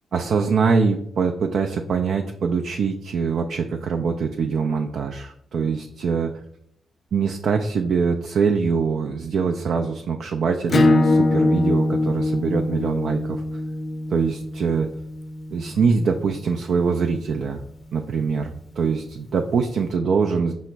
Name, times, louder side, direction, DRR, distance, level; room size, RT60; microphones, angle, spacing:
voice 1, 0.1-6.3 7.1-13.6 14.1-14.9 15.5-17.6 17.9-20.5, right 5 dB, 70° right, 3 dB, 0.3 m, -23 dB
Acoustic guitar / Strum, 10.7-16.0, left 2 dB, 50° left, 0.5 m, -22 dB
5.4 x 2.0 x 4.4 m, 0.72 s
supercardioid pair, 45°, 0 cm